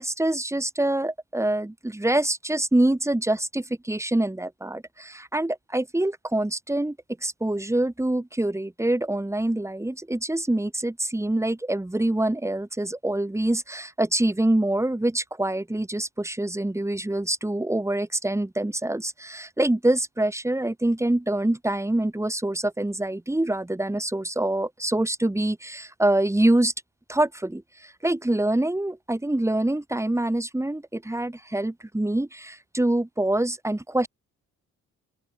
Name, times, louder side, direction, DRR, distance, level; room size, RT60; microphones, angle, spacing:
voice 1, 0.0-7.0 7.2-26.7 27.1-34.1, right 1 dB, 10° right, 7.2 m, -25 dB
open air
cardioid pair, 90°, 30 cm